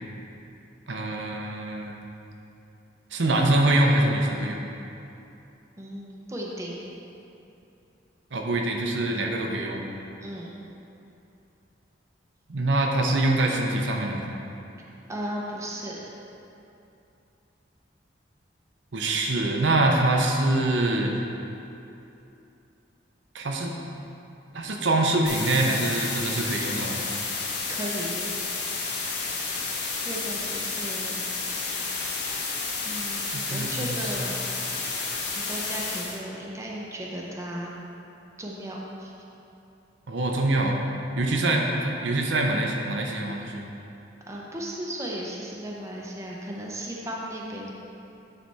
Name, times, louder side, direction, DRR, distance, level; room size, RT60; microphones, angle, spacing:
voice 1, 0.9-2.0 3.1-4.7 8.3-9.8 12.5-14.4 18.9-21.2 23.3-23.8 24.5-27.2 33.3-34.0 40.1-40.9 41.2-43.7, right 2 dB, 75° right, 1 dB, 0.7 m, -24 dB
voice 2, 5.8-6.8 10.2-10.5 15.1-16.1 27.7-28.4 30.0-31.2 32.8-34.7 35.3-37.7 38.4-39.1 44.3-47.7, equal, 15° right, -3 dB, 0.6 m, -35 dB
sound 1, 25.3-36.2, left 4 dB, 60° left, 0.9 m, -31 dB
9.3 x 3.3 x 4.1 m, 2.8 s
head